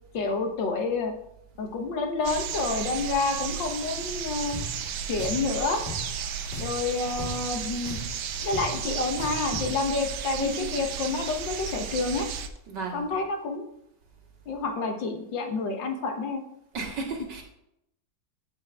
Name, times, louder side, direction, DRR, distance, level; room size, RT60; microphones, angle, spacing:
voice 1, 0.1-1.1 1.6-4.6 5.1-5.8 6.6-8.0 8.4-12.3 12.9-13.7 14.5-16.4, left 3 dB, 75° left, 4 dB, 1.9 m, -29 dB
sound 1, 2.2-12.5, right 7 dB, 90° right, 1.5 m, -34 dB
Drum, 4.5-4.7 5.2-5.4 5.9-6.0 6.5-6.8 7.2-7.3 7.9-8.1 8.5-8.7 9.2-9.7, left 1 dB, 25° left, 3.2 m, -36 dB
voice 2, 10.4-10.7 12.7-13.1 16.7-17.4, right 4 dB, 65° right, 0 dB, 2.5 m, -33 dB
14.5 x 5.5 x 3.5 m, 0.80 s
omnidirectional pair, 2.1 m